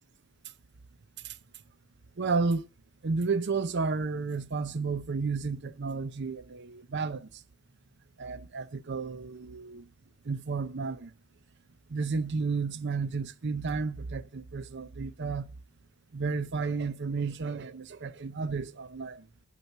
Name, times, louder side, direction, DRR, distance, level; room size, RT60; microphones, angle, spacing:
voice 1, 2.2-2.7 3.0-7.3 8.2-9.9 10.2-11.1 11.9-15.5 16.1-19.3, right 4 dB, 50° right, 0.6 m, -32 dB
11.0 x 4.6 x 6.5 m
head